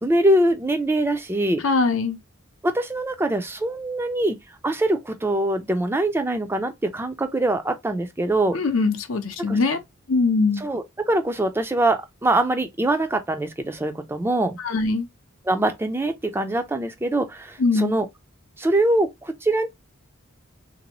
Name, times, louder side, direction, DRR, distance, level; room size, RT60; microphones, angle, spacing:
voice 1, 0.0-1.6 2.6-4.4 4.6-8.6 9.5-9.6 10.6-14.6 15.5-18.1 18.6-19.7, right 1 dB, 10° right, 0.3 m, -23 dB
voice 2, 1.6-2.2 8.5-9.8 10.1-10.6 14.6-15.1 17.6-17.9, left 3 dB, 85° left, 0.7 m, -21 dB
3.3 x 2.6 x 2.9 m
head